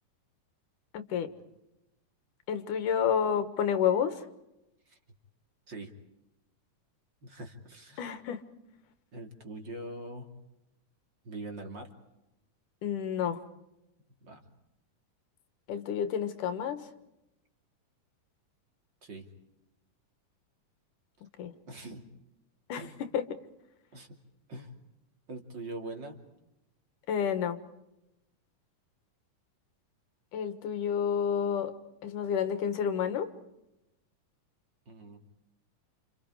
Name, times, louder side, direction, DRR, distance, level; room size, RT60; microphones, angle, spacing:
voice 1, 0.9-1.3 2.5-4.3 8.0-8.4 12.8-13.4 15.7-16.9 21.4-21.5 22.7-22.8 23.1-23.2 27.1-27.6 30.3-31.7 32.0-33.3, left 8 dB, 90° left, 10 dB, 3.1 m, -29 dB
voice 2, 7.2-8.1 9.1-10.3 11.2-11.9 14.2-14.4 19.0-19.3 21.7-22.0 22.8-22.9 23.9-24.2 24.5-24.8 25.3-26.2 34.9-35.2, right 2 dB, 35° right, 4 dB, 3.1 m, -43 dB
29.5 x 28.5 x 5.0 m, 0.90 s
omnidirectional pair, 3.6 m